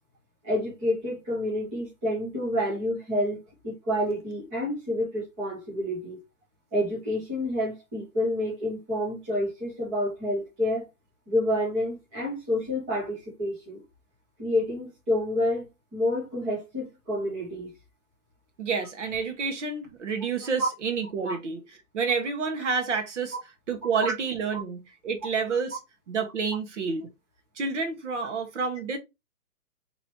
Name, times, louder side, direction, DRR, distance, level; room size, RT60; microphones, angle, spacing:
voice 1, 0.4-6.2 6.7-10.9 11.3-13.8 14.4-17.7 20.6-20.7 21.2-21.4 22.8-22.9 24.0-24.1 24.5-24.6, left 1 dB, 5° right, 0.6 m, -29 dB
voice 2, 18.6-21.6 21.9-23.4 23.7-25.8 26.1-27.1 27.6-29.0, right 5 dB, 50° right, 1.1 m, -29 dB
3.1 x 3.0 x 4.0 m
hypercardioid pair, 160°, 46 cm